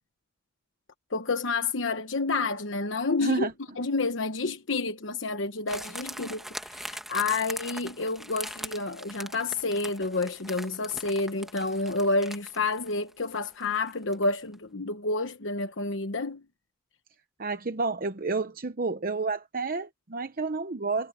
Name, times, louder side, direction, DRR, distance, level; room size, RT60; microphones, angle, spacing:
voice 1, 1.1-3.5 3.8-6.4 6.7-16.4, left 3 dB, 65° left, 1.1 m, -29 dB
voice 2, 3.2-3.5 17.4-21.1, right 3 dB, 45° right, 0.9 m, -30 dB
sound 1, 5.7-14.3 14.5-14.6, equal, ahead, 1.5 m, -41 dB
head